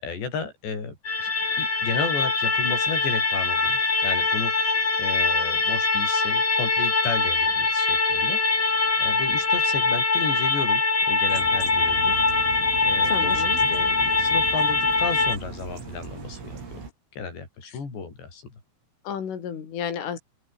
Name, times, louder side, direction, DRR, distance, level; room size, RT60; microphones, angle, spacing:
voice 1, 0.0-1.3 1.6-8.7 9.0-12.1 12.8-16.8 17.2-18.5, left 5 dB, 60° left, 9.6 m, -33 dB
sound 1, 1.1-15.4, left 3 dB, 30° left, 6.1 m, -23 dB
sound 2, 11.3-16.9, right 5 dB, 75° right, 9.6 m, -38 dB
voice 2, 13.1-13.6 17.7-17.8 19.1-20.2, left 8 dB, 75° left, 7.0 m, -32 dB
open air
omnidirectional pair, 5.7 m